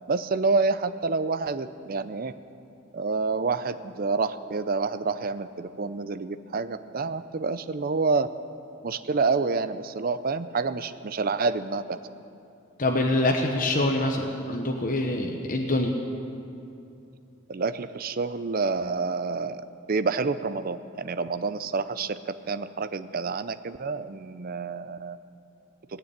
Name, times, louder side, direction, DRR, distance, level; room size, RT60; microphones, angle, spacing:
voice 1, 0.1-2.3 2.9-8.3 8.8-12.0 17.5-19.6 19.9-25.2, right 4 dB, 40° right, 12 dB, 0.5 m, -28 dB
voice 2, 12.8-16.0, left 1 dB, 40° left, 2 dB, 0.9 m, -25 dB
18.0 x 6.8 x 10.0 m, 2.7 s
head